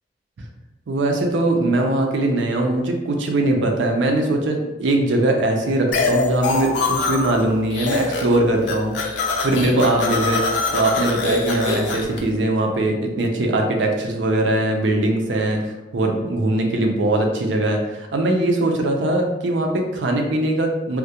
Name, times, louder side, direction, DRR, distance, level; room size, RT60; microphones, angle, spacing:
voice 1, 0.9-10.4 10.7-15.6 15.9-21.0, right 1 dB, 85° right, 3 dB, 0.4 m, -21 dB
sound 1, 5.9-7.4 7.7-8.4 8.6-12.2, left 3 dB, 70° left, 0.4 m, -23 dB
2.3 x 2.1 x 2.7 m, 1.1 s
head